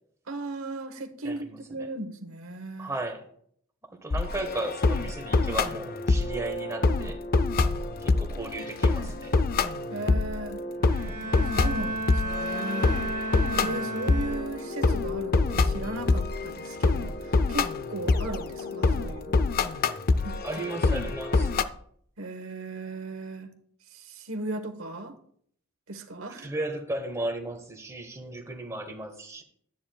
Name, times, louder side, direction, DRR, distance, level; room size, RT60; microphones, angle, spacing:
voice 1, 0.3-2.9 9.9-10.6 11.5-13.1 13.5-19.4 19.6-19.9 20.2-20.6 22.2-23.5 23.9-25.2 25.9-26.5, right 2 dB, 70° right, 1.1 m, -37 dB
voice 2, 1.2-1.9 2.8-3.3 3.9-7.2 8.0-9.3 20.4-21.5 26.4-29.4, right 2 dB, 15° right, 1.3 m, -35 dB
sound 1, 4.1-21.6, left 3 dB, 45° left, 0.5 m, -26 dB
Bowed string instrument, 10.8-14.9, right 2 dB, 40° right, 1.5 m, -33 dB
12.5 x 9.6 x 2.3 m
head